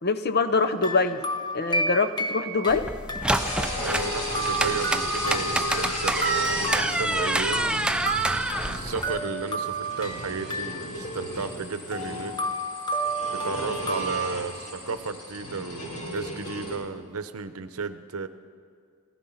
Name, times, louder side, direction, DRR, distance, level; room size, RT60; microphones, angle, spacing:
voice 1, 0.0-1.2 1.5-2.9, left 4 dB, 45° left, 9 dB, 0.7 m, -24 dB
sound 1, 0.5-2.8 3.1-14.3, right 2 dB, 20° left, 0.9 m, -32 dB
sound 2, 2.7-9.2, right 1 dB, 5° right, 0.3 m, -28 dB
sound 3, 3.3-16.8, equal, 75° left, 4.4 m, -34 dB
voice 2, 3.8-8.1 8.7-12.4 13.3-18.3, right 4 dB, 70° right, 11 dB, 0.8 m, -34 dB
16.5 x 14.5 x 5.7 m, 2.3 s
head